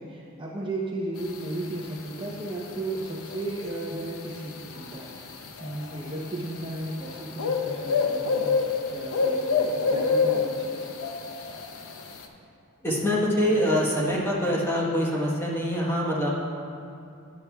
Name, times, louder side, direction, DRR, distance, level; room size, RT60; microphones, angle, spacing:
voice 1, 0.0-10.9, right 2 dB, 25° right, -3 dB, 0.7 m, -35 dB
sound 1, 1.2-12.3, left 4 dB, 75° left, 0.6 m, -29 dB
voice 2, 12.8-16.3, equal, 10° left, -4 dB, 1.1 m, -24 dB
12.0 x 8.4 x 2.3 m, 2.6 s
head